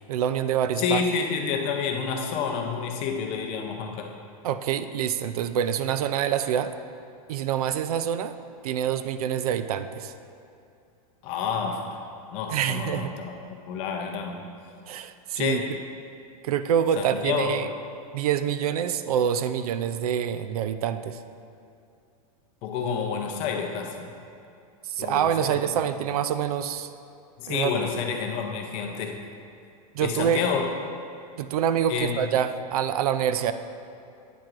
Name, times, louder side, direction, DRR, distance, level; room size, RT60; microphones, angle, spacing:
voice 1, 0.1-1.0 4.4-6.7 7.3-8.3 8.6-10.1 12.5-13.1 14.9-15.6 16.4-17.7 18.1-21.2 24.9-26.9 27.5-27.7 29.9-30.4 31.4-33.5, right 9 dB, 70° right, 11 dB, 0.4 m, -26 dB
voice 2, 0.8-4.1 11.2-14.4 15.3-15.7 17.0-17.6 22.6-24.1 25.0-25.6 27.4-29.2 30.0-30.7 31.9-32.2, left 6 dB, 30° left, 3 dB, 0.5 m, -29 dB
9.0 x 7.5 x 2.5 m, 2.6 s
supercardioid pair, 165°, 20 cm